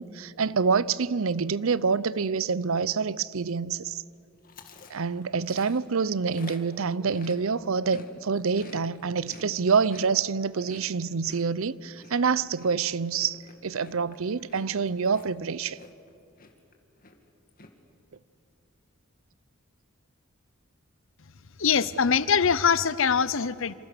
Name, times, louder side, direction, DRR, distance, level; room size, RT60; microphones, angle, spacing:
voice 1, 0.0-4.0 4.9-15.8, right 5 dB, 70° right, 0.6 m, -27 dB
Chewing mastication, 4.4-8.1 8.4-16.1 16.4-16.7 17.0-17.7, left 3 dB, 40° left, 2.3 m, -50 dB
voice 2, 21.6-23.7, left 6 dB, 60° left, 0.8 m, -23 dB
27.5 x 27.0 x 6.7 m
head